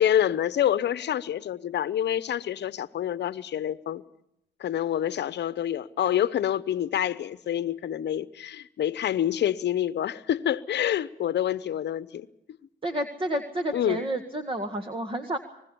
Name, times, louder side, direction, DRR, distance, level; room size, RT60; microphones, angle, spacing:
voice 1, 0.0-4.0 4.6-12.3 13.7-14.0, left 10 dB, 60° left, 0.9 m, -27 dB
voice 2, 12.8-15.4, right 1 dB, 25° right, 1.8 m, -30 dB
24.5 x 20.5 x 7.0 m
cardioid pair, 90°, 20 cm